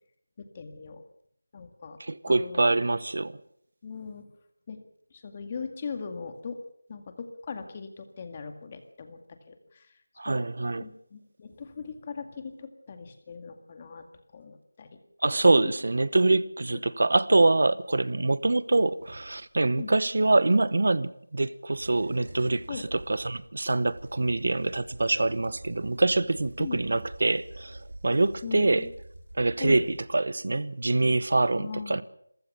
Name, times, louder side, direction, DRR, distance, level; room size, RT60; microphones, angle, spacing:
voice 1, 0.4-1.0 1.5-2.0 2.3-2.6 3.8-4.3 4.7-4.8 5.1-6.6 6.9-10.0 10.3-10.5 10.8-14.1 14.3-15.0 15.5-15.7 16.7-16.8 19.8-19.9 22.7-22.9 26.6-26.8 28.4-28.9 29.6-29.8 31.5-32.0, left 5 dB, 25° left, 2.1 m, -39 dB
voice 2, 2.0-3.4 10.2-10.8 15.2-28.9 29.4-32.0, right 2 dB, 60° right, 0.9 m, -25 dB
sound 1, 18.8-20.0 21.7-30.3, right 1 dB, 85° right, 4.3 m, -46 dB
27.5 x 15.0 x 6.9 m
figure-of-eight pair, 170°, 0 cm